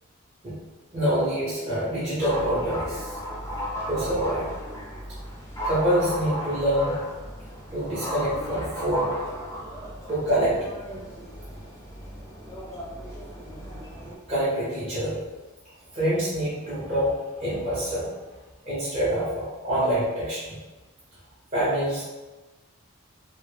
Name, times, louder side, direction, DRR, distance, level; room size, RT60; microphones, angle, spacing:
voice 1, 0.9-3.2 3.9-4.5 5.6-7.0 7.7-9.1 10.1-10.6 14.3-15.2 15.9-18.1 18.6-20.6 21.5-22.1, equal, 30° right, -11 dB, 0.6 m, -26 dB
sound 1, 2.2-14.2, equal, 15° left, 0.5 m, -35 dB
2.0 x 2.0 x 3.1 m, 1.2 s
head